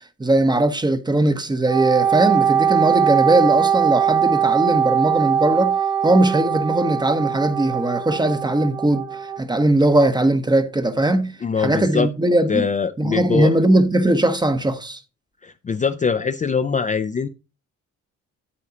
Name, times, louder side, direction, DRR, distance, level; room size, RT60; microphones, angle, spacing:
voice 1, 0.2-5.8 6.0-9.1 9.4-12.7 13.0-15.0, right 1 dB, 15° right, 0.9 m, -19 dB
Wind instrument woodwind instrument, 1.7-9.4, right 8 dB, 90° right, 1.6 m, -21 dB
voice 2, 11.4-12.1 12.5-13.5 15.4-17.3, left 6 dB, 25° left, 0.5 m, -22 dB
8.5 x 8.1 x 2.8 m
cardioid pair, 90°, 30 cm